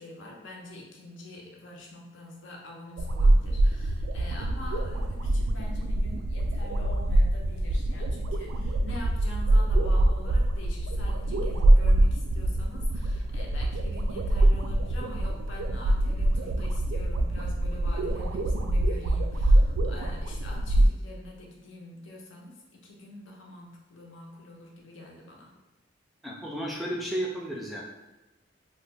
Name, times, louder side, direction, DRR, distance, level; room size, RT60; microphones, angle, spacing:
voice 1, 0.0-25.5, left 2 dB, 70° left, -1 dB, 0.6 m, -45 dB
sound 1, 3.0-20.9, right 1 dB, 85° right, 0.3 m, -24 dB
voice 2, 26.2-27.8, right 1 dB, ahead, -3 dB, 0.3 m, -33 dB
2.9 x 2.1 x 3.3 m, 1.0 s
head